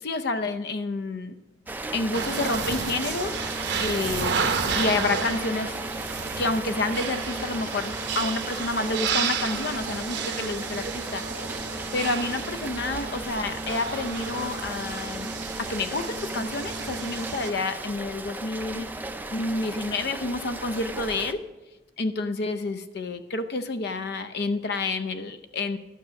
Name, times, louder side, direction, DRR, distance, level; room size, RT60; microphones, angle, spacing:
voice 1, 0.0-1.3 1.9-3.3 3.8-4.5 4.8-5.8 6.4-11.2 11.9-15.3 15.6-18.9 19.3-21.4 22.0-25.8, left 3 dB, 55° left, 10 dB, 0.6 m, -29 dB
Rain, 1.7-21.3, right 2 dB, 10° right, 0.4 m, -36 dB
sound 1, 2.1-17.5, right 5 dB, 60° right, 0.8 m, -32 dB
12.0 x 6.2 x 5.8 m, 1.1 s
head